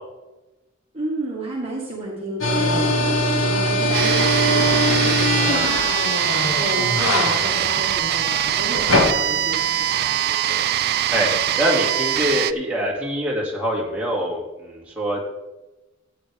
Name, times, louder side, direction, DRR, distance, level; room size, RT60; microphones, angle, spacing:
voice 1, 0.9-10.6, right 1 dB, 30° right, -3 dB, 1.8 m, -31 dB
sound 1, 2.4-10.2, left 1 dB, 80° left, 1.8 m, -22 dB
sound 2, 3.9-12.5, right 11 dB, 50° right, 0.3 m, -22 dB
voice 2, 11.6-15.2, equal, 5° right, -4 dB, 2.3 m, -24 dB
14.5 x 8.6 x 3.5 m, 1.1 s
head